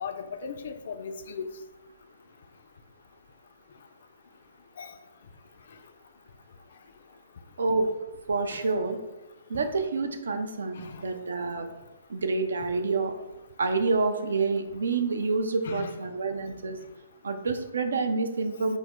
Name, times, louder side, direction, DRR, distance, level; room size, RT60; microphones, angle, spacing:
voice 1, 0.0-1.5 4.8-4.9 8.5-8.6 10.8-11.0 15.6-16.0, left 6 dB, 60° left, 8 dB, 0.3 m, -37 dB
voice 2, 7.6-7.9 8.3-9.0 9.5-11.7 12.1-13.1 13.6-16.8 17.2-18.8, right 3 dB, 75° right, 7 dB, 0.4 m, -28 dB
3.4 x 2.0 x 3.5 m, 1.0 s
figure-of-eight pair, 130°, 0 cm